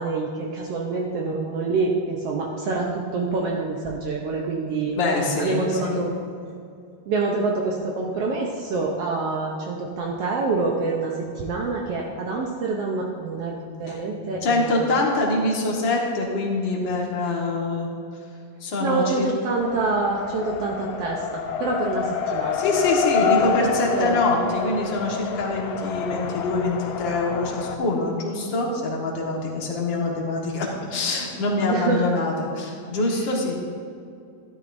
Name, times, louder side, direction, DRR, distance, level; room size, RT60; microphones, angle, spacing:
voice 1, 0.0-5.0 5.4-6.1 7.1-14.8 18.8-22.6 23.2-24.2 31.7-32.1, right 3 dB, 70° right, -1 dB, 1.6 m, -26 dB
voice 2, 5.0-6.1 13.9-14.0 14.4-17.9 18.6-19.3 22.5-33.6, left 2 dB, 50° left, -2 dB, 1.8 m, -24 dB
Race car auto racing, 19.6-27.8, left 7 dB, 80° left, 2.0 m, -28 dB
13.0 x 12.0 x 2.6 m, 2.4 s
omnidirectional pair, 3.4 m